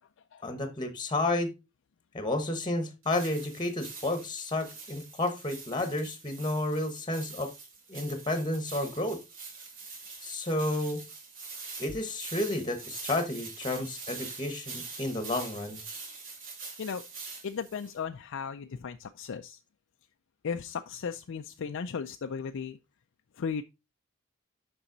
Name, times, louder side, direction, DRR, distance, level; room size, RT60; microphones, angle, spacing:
voice 1, 0.4-1.5 2.1-7.5 7.9-9.2 10.2-11.0 11.8-15.8, left 2 dB, 20° left, 1.1 m, -31 dB
sound 1, 3.0-17.9, right 4 dB, 65° right, 2.7 m, -44 dB
voice 2, 17.4-19.6 20.4-22.8 23.4-23.6, left 6 dB, 60° left, 0.4 m, -36 dB
7.1 x 5.5 x 3.9 m
head